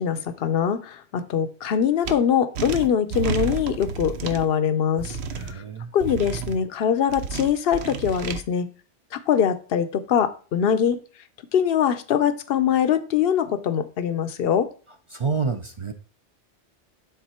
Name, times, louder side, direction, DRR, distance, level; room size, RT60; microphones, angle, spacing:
voice 1, 0.0-5.2 5.4-5.6 5.9-8.7 9.1-11.0 11.5-14.7, left 8 dB, 65° left, 12 dB, 0.9 m, -23 dB
sound 1, 2.1-2.2 2.6-4.5 5.0-5.5 6.0-6.6 7.1-8.4, right 6 dB, 70° right, 1.0 m, -31 dB
voice 2, 5.3-5.9 15.1-15.9, right 5 dB, 35° right, 7 dB, 0.5 m, -28 dB
9.4 x 3.9 x 4.3 m, 0.37 s
omnidirectional pair, 1.2 m